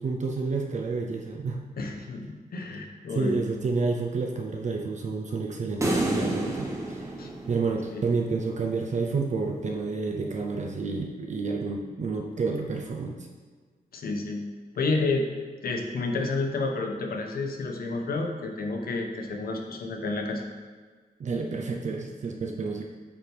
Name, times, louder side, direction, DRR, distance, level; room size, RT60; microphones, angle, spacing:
voice 1, 0.0-1.7 3.1-7.1 7.5-13.2 21.2-22.8, right 4 dB, 50° right, 2 dB, 0.6 m, -29 dB
voice 2, 1.8-3.4 7.2-7.3 7.9-8.0 13.9-14.4 14.8-15.3 15.6-20.4, left 3 dB, 70° left, 2 dB, 0.9 m, -30 dB
sound 1, 5.8-8.2, right 1 dB, 20° right, 1.0 m, -29 dB
8.6 x 3.4 x 4.5 m, 1.5 s
wide cardioid pair, 160°, 16 cm